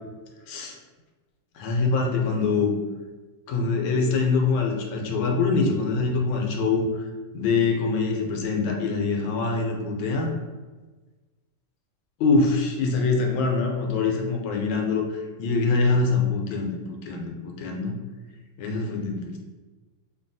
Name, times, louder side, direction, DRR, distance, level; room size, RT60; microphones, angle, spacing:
voice 1, 1.6-2.7 3.5-6.9 7.3-10.3 12.2-17.9 18.6-19.4, left 4 dB, 90° left, 2 dB, 1.3 m, -24 dB
3.1 x 2.2 x 2.6 m, 1.3 s
omnidirectional pair, 2.0 m